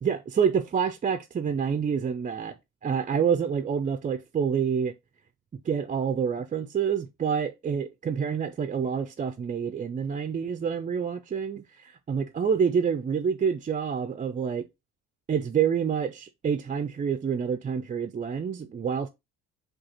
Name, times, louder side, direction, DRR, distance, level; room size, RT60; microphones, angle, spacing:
voice 1, 0.0-2.6 2.8-4.9 5.6-14.7 15.3-19.1, right 7 dB, 25° right, 0.3 m, -27 dB
6.1 x 2.4 x 2.8 m
supercardioid pair, 60°, 37 cm